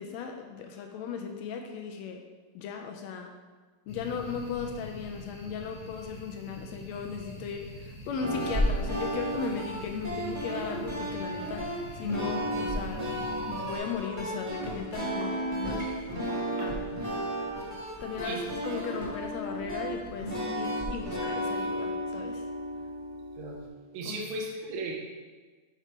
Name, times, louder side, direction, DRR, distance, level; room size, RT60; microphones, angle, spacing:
voice 1, 0.0-2.2 2.6-3.3 3.9-15.8 16.6-16.8 18.0-22.5 24.0-24.2, left 6 dB, 80° left, 4 dB, 1.7 m, -37 dB
sound 1, 3.9-13.8, left 1 dB, 40° left, 0.9 m, -44 dB
sound 2, 8.2-23.7, equal, 20° right, 1.2 m, -33 dB
voice 2, 16.1-16.7 18.2-18.4 23.4-23.7 23.9-24.9, right 2 dB, 80° right, -1 dB, 2.2 m, -37 dB
6.2 x 4.3 x 5.1 m, 1.4 s
omnidirectional pair, 3.4 m